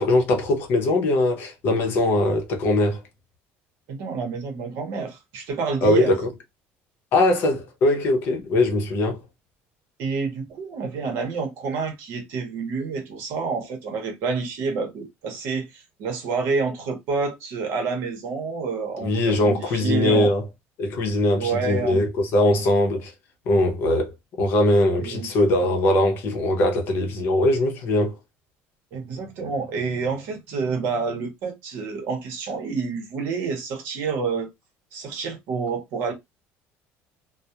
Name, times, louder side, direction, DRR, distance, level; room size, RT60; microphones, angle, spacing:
voice 1, 0.0-3.0 5.8-6.3 7.1-9.2 19.0-20.5 20.8-23.1 23.5-28.2, left 1 dB, 45° left, 0.6 m, -21 dB
voice 2, 3.9-6.1 10.0-20.3 21.4-22.0 25.0-25.3 28.9-34.5 34.9-36.1, right 4 dB, 55° right, 0.8 m, -28 dB
2.3 x 2.0 x 2.7 m
cardioid pair, 180°, 5 cm